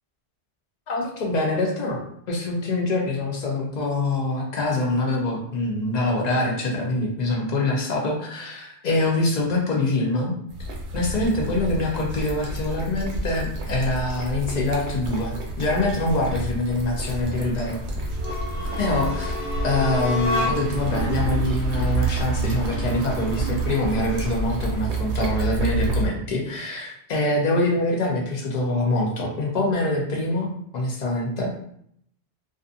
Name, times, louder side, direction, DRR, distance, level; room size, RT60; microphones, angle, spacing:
voice 1, 0.9-2.0 2.3-10.3 10.9-17.8 18.8-19.4 19.6-31.5, left 2 dB, 50° left, -1 dB, 0.5 m, -24 dB
sound 1, 10.5-26.1, right 2 dB, 70° right, 0.9 m, -28 dB
sound 2, 18.1-20.9, left 2 dB, 80° left, 1.1 m, -29 dB
2.4 x 2.4 x 2.5 m, 0.69 s
omnidirectional pair, 1.3 m